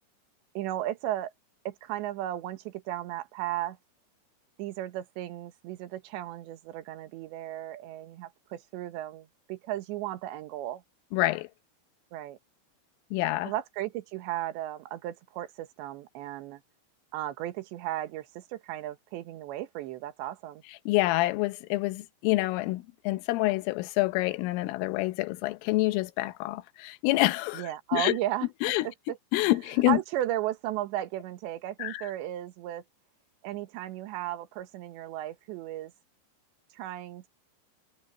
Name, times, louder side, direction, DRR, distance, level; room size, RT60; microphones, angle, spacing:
voice 1, 0.5-1.3 1.7-3.8 4.6-10.8 12.1-12.4 13.4-16.6 17.1-20.6 27.5-29.2 29.9-32.8 33.4-35.9 36.7-37.3, right 13 dB, 70° right, 3.3 m, -35 dB
voice 2, 11.1-11.5 13.1-13.5 20.9-28.1 28.6-28.9 29.3-30.0 31.8-32.1, left 19 dB, 80° left, 3.4 m, -27 dB
omnidirectional pair, 5.9 m